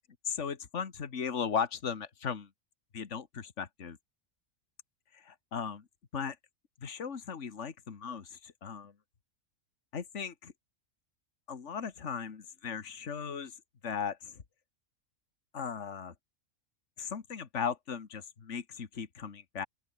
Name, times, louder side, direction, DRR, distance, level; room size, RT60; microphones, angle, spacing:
voice 1, 0.3-2.5 2.9-4.0 5.1-5.8 6.1-6.4 6.8-8.9 9.9-10.5 11.5-13.5 13.8-14.4 15.5-16.1 17.0-19.7, left 6 dB, 65° left, 2.0 m, -37 dB
open air
omnidirectional pair, 1.4 m